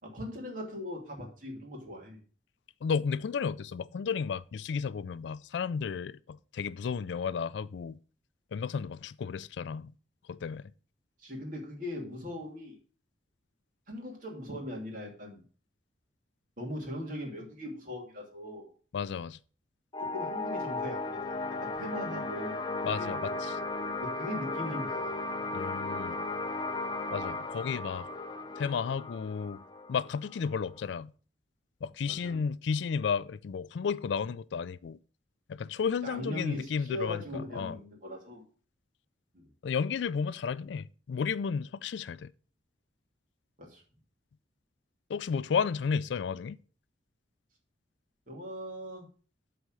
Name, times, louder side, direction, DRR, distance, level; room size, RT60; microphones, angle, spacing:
voice 1, 0.0-2.2 11.2-12.8 13.9-15.4 16.6-18.7 20.0-23.2 24.0-25.2 32.1-32.4 36.0-38.4 39.3-39.5 43.6-43.8 48.3-49.1, left 1 dB, 45° right, 2.6 m, -40 dB
voice 2, 2.8-8.0 8.5-9.9 10.3-10.7 18.9-19.4 22.8-23.6 25.5-26.2 27.1-28.1 28.6-29.6 29.9-31.1 31.8-35.0 35.5-37.8 39.6-42.3 45.1-46.6, left 6 dB, 70° left, 0.3 m, -33 dB
sound 1, 19.9-31.0, left 2 dB, 25° left, 0.6 m, -36 dB
8.1 x 4.3 x 6.3 m
head